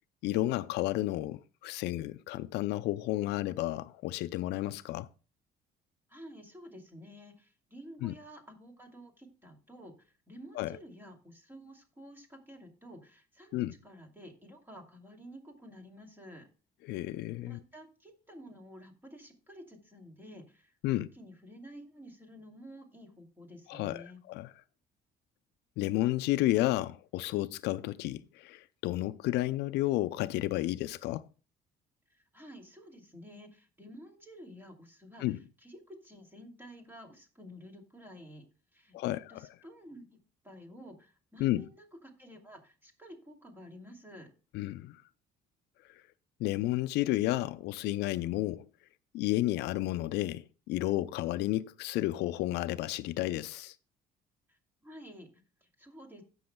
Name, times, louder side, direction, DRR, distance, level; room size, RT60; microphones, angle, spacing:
voice 1, 0.2-5.1 8.0-8.1 10.6-10.7 13.5-13.7 16.9-17.6 20.8-21.1 23.7-24.5 25.8-31.2 35.2-35.4 38.9-39.2 41.4-41.6 44.5-45.0 46.4-48.7 49.1-53.7, left 16 dB, 80° left, 0.4 m, -32 dB
voice 2, 6.1-16.5 17.5-24.2 32.1-38.4 38.7-40.2 40.4-44.3 54.5-56.2, equal, 10° right, 2.5 m, -51 dB
16.5 x 6.3 x 2.2 m
cardioid pair, 110°, 17 cm